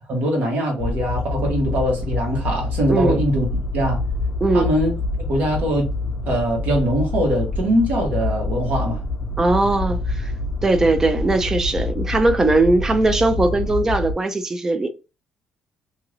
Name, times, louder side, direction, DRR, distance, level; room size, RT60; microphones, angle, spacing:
voice 1, 0.1-3.5 3.7-4.0 4.5-5.9 6.2-9.0, equal, 55° right, 1.4 m, -22 dB
sound 1, 0.8-14.1, left 2 dB, 40° left, 0.6 m, -26 dB
voice 2, 2.9-3.2 4.4-4.7 9.4-10.3 10.6-14.9, right 2 dB, 15° right, 0.4 m, -19 dB
2.8 x 2.5 x 3.1 m
cardioid pair, 140°, 3 cm